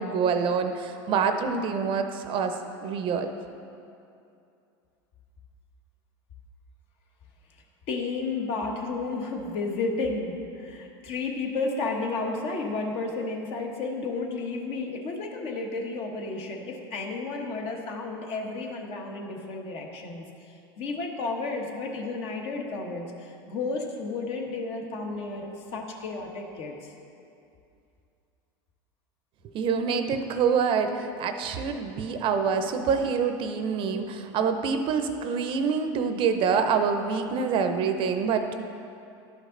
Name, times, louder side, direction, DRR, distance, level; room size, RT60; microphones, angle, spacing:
voice 1, 0.0-2.5 2.8-3.3 29.5-38.5, right 6 dB, 45° right, 7 dB, 0.6 m, -26 dB
voice 2, 7.9-25.5 25.7-26.9, left 3 dB, 55° left, 1 dB, 1.2 m, -32 dB
11.0 x 5.3 x 3.8 m, 2.6 s
supercardioid pair, 115°, 12 cm